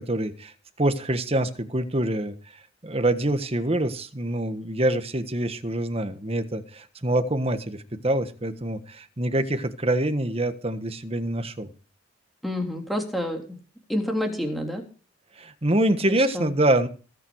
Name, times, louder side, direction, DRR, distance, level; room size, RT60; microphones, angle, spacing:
voice 1, 0.0-11.7 15.4-16.9, right 1 dB, 30° right, 10 dB, 1.4 m, -25 dB
voice 2, 12.4-13.4 13.9-14.8 16.3-16.5, left 1 dB, ahead, 1 dB, 3.3 m, -28 dB
20.0 x 9.1 x 4.7 m, 0.36 s
head